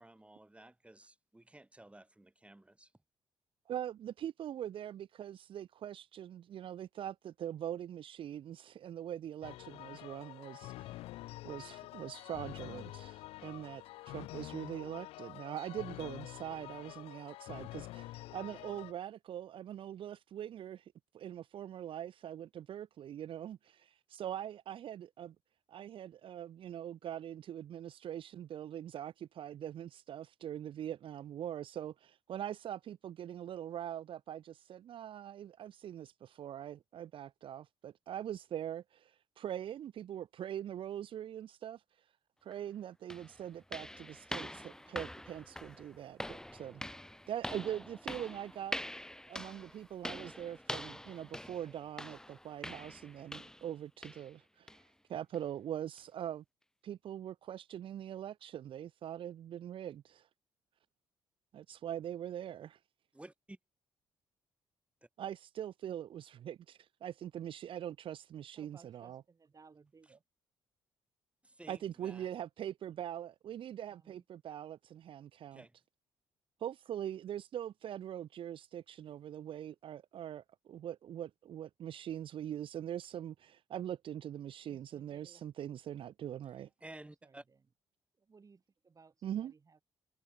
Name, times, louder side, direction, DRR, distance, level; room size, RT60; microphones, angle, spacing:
voice 1, 0.0-2.9 63.1-63.6 65.0-65.1 70.0-70.1 71.4-72.3 75.5-75.8 86.8-87.4, right 1 dB, 10° right, 8.0 m, -54 dB
voice 2, 3.7-11.0 11.4-25.3 25.7-42.1 42.4-46.8 47.3-54.8 55.1-56.4 56.8-60.3 61.5-62.7 65.2-69.2 71.7-75.6 76.6-86.7 89.2-89.5, right 10 dB, 60° right, 0.9 m, -43 dB
sound 1, 9.4-18.9, left 17 dB, 75° left, 0.9 m, -47 dB
sound 2, 42.5-42.6 43.1-53.7 54.0-54.3 54.7-54.9 55.3-55.4 56.0-56.1, left 1 dB, 5° left, 2.4 m, -45 dB
voice 3, 68.6-70.2 74.0-74.2 84.7-85.5 87.2-87.4 88.2-89.8, right 4 dB, 35° right, 2.5 m, -62 dB
hypercardioid pair, 55°, 10 cm